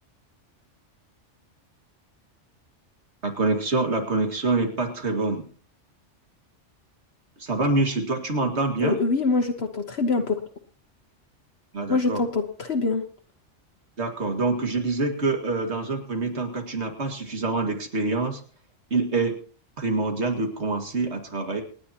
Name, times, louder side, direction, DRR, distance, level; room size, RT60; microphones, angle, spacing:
voice 1, 3.2-5.5 7.4-9.0 11.7-12.2 14.0-18.4 18.9-19.4 19.8-21.6, right 3 dB, 65° right, 4 dB, 2.4 m, -26 dB
voice 2, 8.8-10.4 11.9-13.0, left 3 dB, 60° left, 4 dB, 1.3 m, -24 dB
27.5 x 10.0 x 2.9 m, 0.42 s
omnidirectional pair, 1.2 m